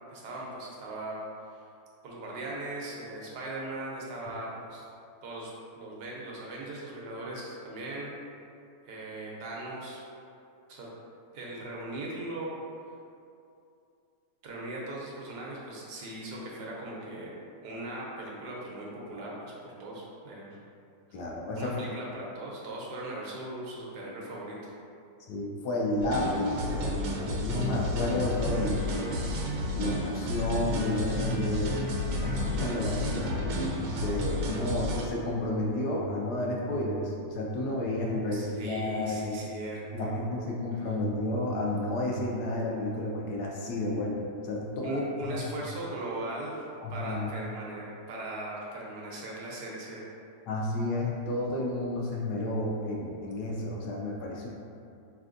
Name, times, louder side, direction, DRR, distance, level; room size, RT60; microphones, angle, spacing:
voice 1, 0.1-1.2 2.0-4.8 5.2-8.1 8.8-10.0 10.7-10.9 11.3-12.5 14.4-17.4 17.6-20.6 21.6-24.6 38.3-40.9 44.8-46.6 46.9-50.0, right 2 dB, 70° right, -4 dB, 1.3 m, -39 dB
voice 2, 21.1-21.9 25.3-29.2 29.7-31.7 32.2-33.3 33.8-39.4 39.9-45.4 46.8-47.3 50.5-54.5, left 2 dB, 75° left, -2 dB, 1.1 m, -31 dB
sound 1, 26.0-35.1, left 1 dB, 90° right, 1.3 m, -31 dB
sound 2, 28.1-34.0, left 1 dB, 50° left, 1.5 m, -45 dB
sound 3, 35.9-42.3, right 5 dB, 15° left, 0.6 m, -44 dB
4.4 x 3.4 x 2.5 m, 2.5 s
omnidirectional pair, 1.9 m